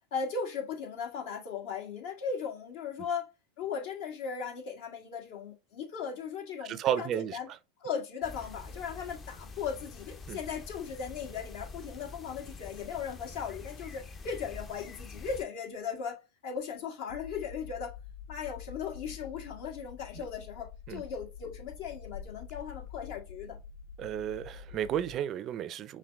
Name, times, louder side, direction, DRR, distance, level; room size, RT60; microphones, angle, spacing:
voice 1, 0.1-3.3 3.6-7.5 7.8-17.9 18.3-23.6, left 6 dB, 65° left, 1.6 m, -37 dB
voice 2, 6.6-7.4 10.3-10.4 20.9-21.0 24.0-26.0, right 10 dB, 40° right, 0.4 m, -33 dB
sound 1, 8.2-15.4, left 3 dB, 30° left, 0.6 m, -46 dB
sound 2, 17.1-25.1, left 8 dB, 85° left, 0.4 m, -47 dB
5.9 x 2.2 x 3.4 m
hypercardioid pair, 100°, 0 cm